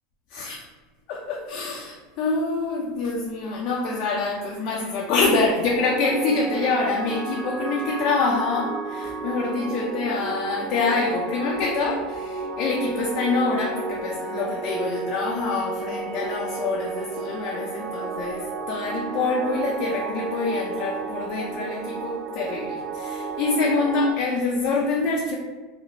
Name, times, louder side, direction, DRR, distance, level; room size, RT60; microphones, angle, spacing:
voice 1, 1.1-25.4, left 3 dB, 55° left, -2 dB, 0.4 m, -26 dB
sound 1, 5.7-24.1, right 4 dB, 40° right, 0.4 m, -32 dB
3.1 x 2.1 x 2.6 m, 1.3 s
hypercardioid pair, 85°, 0 cm